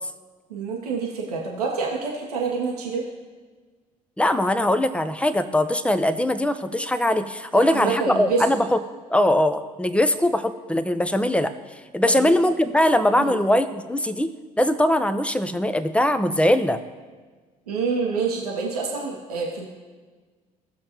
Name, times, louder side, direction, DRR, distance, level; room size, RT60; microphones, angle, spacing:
voice 1, 0.5-3.0 7.7-8.4 12.1-12.3 13.1-13.4 17.7-19.7, right 4 dB, 85° right, -1 dB, 1.1 m, -27 dB
voice 2, 4.2-8.8 9.1-11.5 11.9-14.3 14.6-16.8, left 1 dB, 5° left, 10 dB, 0.7 m, -21 dB
16.5 x 6.5 x 3.0 m, 1.4 s
figure-of-eight pair, 50°, 19 cm